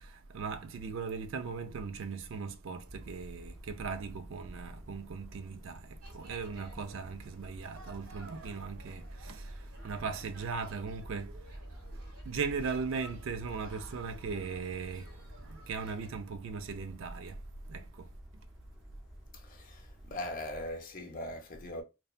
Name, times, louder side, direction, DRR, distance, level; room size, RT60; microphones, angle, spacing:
voice 1, 0.0-11.6 12.3-15.2 15.5-18.1, right 5 dB, 65° right, 0.3 m, -38 dB
sound 1, 2.8-20.7, equal, ahead, 0.6 m, -51 dB
sound 2, 6.0-16.1, right 1 dB, 90° right, 1.3 m, -54 dB
voice 2, 19.3-21.8, left 1 dB, 40° left, 0.6 m, -40 dB
2.6 x 2.2 x 2.3 m
head